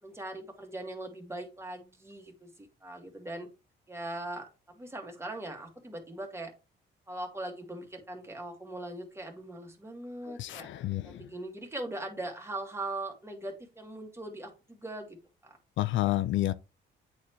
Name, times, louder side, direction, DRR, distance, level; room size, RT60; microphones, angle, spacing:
voice 1, 0.0-3.5 3.9-6.5 7.1-10.7 11.0-15.2 15.4-15.6, right 1 dB, 15° right, 2.0 m, -40 dB
voice 2, 10.3-11.2 15.8-16.5, left 15 dB, 75° left, 0.4 m, -30 dB
8.6 x 4.2 x 3.1 m
cardioid pair, 90°, 20 cm